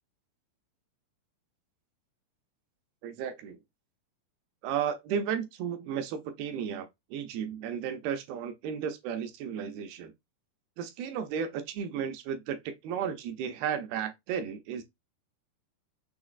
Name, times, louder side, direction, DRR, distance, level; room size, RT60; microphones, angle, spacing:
voice 1, 3.0-3.6 4.6-10.1 10.8-14.8, right 8 dB, 80° right, 2.3 m, -34 dB
6.3 x 2.9 x 2.4 m
omnidirectional pair, 5.0 m